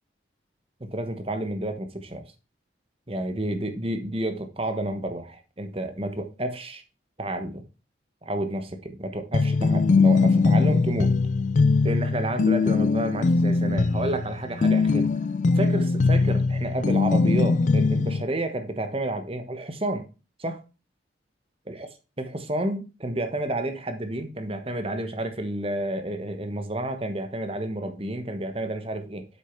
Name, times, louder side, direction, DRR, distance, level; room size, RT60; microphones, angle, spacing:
voice 1, 0.8-2.3 3.1-6.8 7.2-7.6 8.2-11.1 11.8-15.1 15.5-20.1 20.4-20.6 21.7-21.9 22.2-29.2, right 1 dB, 30° right, 1.2 m, -30 dB
sound 1, 9.3-18.2, left 4 dB, 40° left, 0.3 m, -21 dB
7.8 x 6.4 x 4.6 m
head